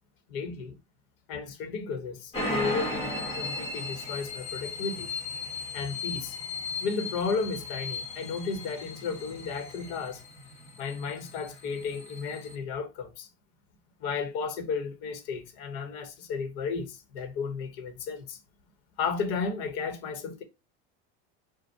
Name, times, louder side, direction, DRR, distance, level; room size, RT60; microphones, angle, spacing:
voice 1, 0.3-0.8 1.3-5.1 5.7-6.4 6.8-10.2 10.8-13.3 14.0-18.4 19.0-20.4, left 5 dB, 55° left, 1.0 m, -33 dB
sound 1, 2.3-12.5, left 2 dB, 20° left, 1.2 m, -36 dB
5.2 x 2.2 x 4.4 m
cardioid pair, 170°, 32 cm